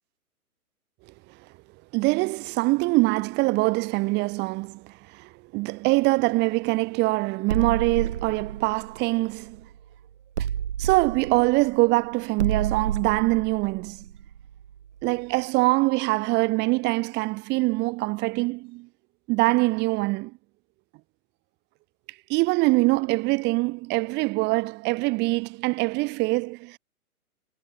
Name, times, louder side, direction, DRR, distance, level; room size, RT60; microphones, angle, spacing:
voice 1, 1.9-4.9 5.2-9.6 10.4-10.5 10.8-14.0 15.0-18.9 19.3-20.3 22.3-26.8, right 24 dB, 25° right, 3.8 m, -24 dB
sound 1, 7.5-9.8 10.4-15.0, right 9 dB, 50° right, 2.2 m, -31 dB
figure-of-eight pair, 125°, 44 cm